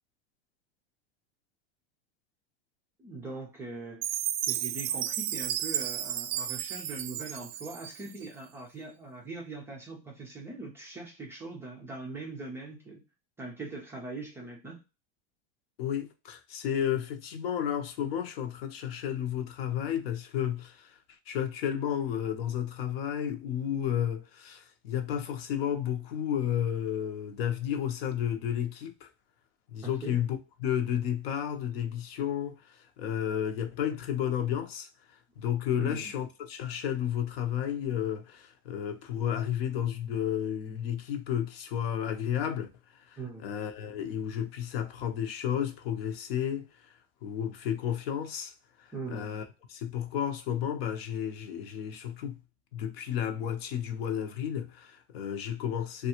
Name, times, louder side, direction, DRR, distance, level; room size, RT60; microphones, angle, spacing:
voice 1, 3.0-4.2 4.4-13.0 13.4-14.8 29.8-30.2 35.8-36.2 43.2-43.6 48.9-49.4, right 3 dB, 10° right, 0.3 m, -41 dB
Chime, 4.0-8.3, right 11 dB, 80° right, 0.5 m, -33 dB
voice 2, 15.8-21.0 21.3-29.1 29.7-34.9 35.4-42.7 43.1-47.0 47.2-48.5 48.8-52.4 52.7-56.1, left 9 dB, 80° left, 0.8 m, -32 dB
3.3 x 2.3 x 2.9 m
supercardioid pair, 165°, 30 cm